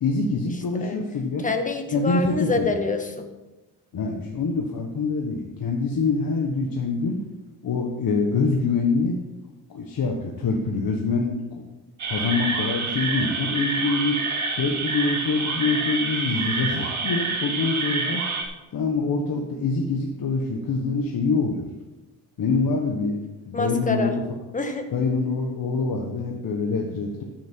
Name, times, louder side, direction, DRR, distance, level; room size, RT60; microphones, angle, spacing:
voice 1, 0.0-1.5 1.9-2.7 3.9-7.2 7.6-9.2 9.7-11.6 12.1-14.2 14.5-18.2 18.7-21.7 22.4-23.2 23.4-24.2 24.9-27.2, left 4 dB, 55° left, 0 dB, 1.4 m, -25 dB
voice 2, 1.4-3.2 23.5-24.1 24.5-24.9, left 3 dB, 20° left, 5 dB, 1.4 m, -26 dB
sound 1, 12.0-18.4, right 4 dB, 40° right, 1.8 m, -27 dB
13.0 x 7.5 x 4.6 m, 1.1 s
cardioid pair, 125°, 41 cm